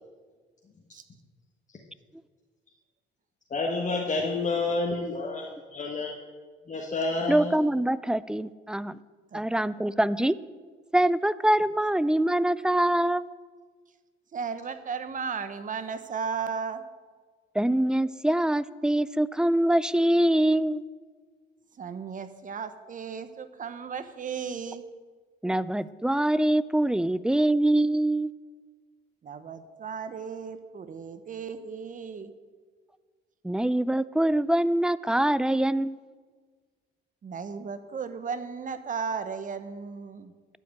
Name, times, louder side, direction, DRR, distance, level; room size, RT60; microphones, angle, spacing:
voice 1, 3.5-6.1 6.7-7.5, left 3 dB, 40° left, -1 dB, 1.4 m, -29 dB
voice 2, 7.3-8.9 9.3-10.4 10.9-13.3 17.6-20.8 25.4-28.3 33.4-36.0, right 1 dB, 5° right, 17 dB, 0.3 m, -24 dB
voice 3, 14.3-16.8 21.8-24.8 29.2-32.3 37.2-40.3, right 6 dB, 40° right, 10 dB, 0.9 m, -35 dB
12.0 x 5.1 x 8.5 m, 1.5 s
cardioid pair, 90°, 20 cm